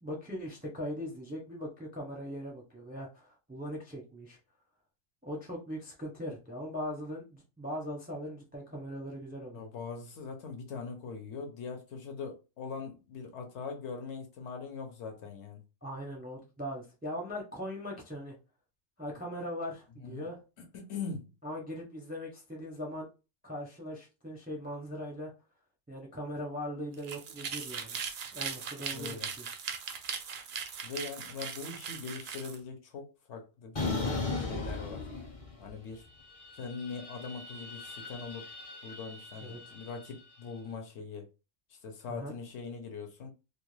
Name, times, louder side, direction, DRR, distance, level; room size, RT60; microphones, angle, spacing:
voice 1, 0.0-4.4 5.2-9.6 15.8-18.4 19.0-20.4 21.4-23.1 23.4-25.3 25.9-28.0 28.3-29.4 39.4-39.7 42.1-42.3, equal, 10° right, 0.4 m, -40 dB
voice 2, 9.5-15.6 20.0-20.3 20.6-21.3 28.9-29.3 30.8-35.1 35.6-36.0 36.5-38.5 38.8-41.3 41.7-43.3, left 5 dB, 70° left, 0.9 m, -41 dB
sound 1, 26.9-32.6, right 6 dB, 60° right, 0.5 m, -39 dB
sound 2, 33.8-35.7 36.0-40.3, left 3 dB, 35° left, 0.6 m, -38 dB
2.4 x 2.2 x 3.1 m
omnidirectional pair, 1.3 m